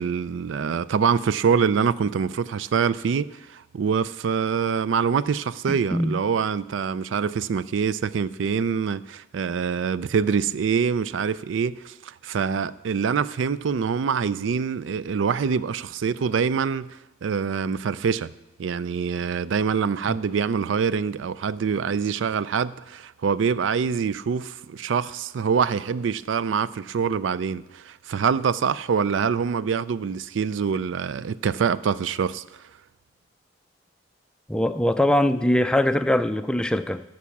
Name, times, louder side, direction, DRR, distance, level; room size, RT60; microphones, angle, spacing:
voice 1, 0.0-18.3 18.6-32.4, right 6 dB, 80° right, 0.4 m, -25 dB
voice 2, 5.7-6.2 20.1-20.2 34.5-37.0, left 1 dB, 5° left, 0.3 m, -22 dB
13.0 x 6.1 x 7.1 m
head